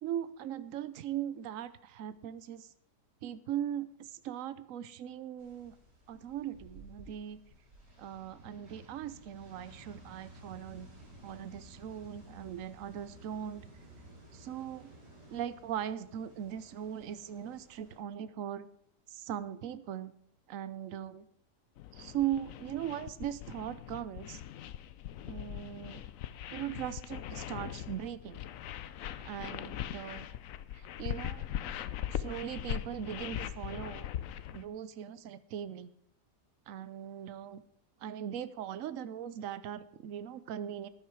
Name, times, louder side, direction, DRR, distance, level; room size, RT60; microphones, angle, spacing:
voice 1, 0.0-2.7 3.2-5.7 6.1-7.4 8.0-10.9 11.2-13.7 14.3-14.9 15.3-18.7 19.1-20.1 20.5-21.3 21.9-24.4 25.3-26.0 26.5-28.4 29.2-30.3 30.7-31.5 32.1-34.1 34.5-35.9 36.7-37.6 38.0-40.9, right 10 dB, 60° right, 15 dB, 1.0 m, -39 dB
sound 1, 5.4-18.0, right 2 dB, 90° right, 5.4 m, -55 dB
sound 2, 21.8-34.6, left 11 dB, 65° left, 0.9 m, -40 dB
14.0 x 9.9 x 4.7 m, 0.69 s
omnidirectional pair, 1.8 m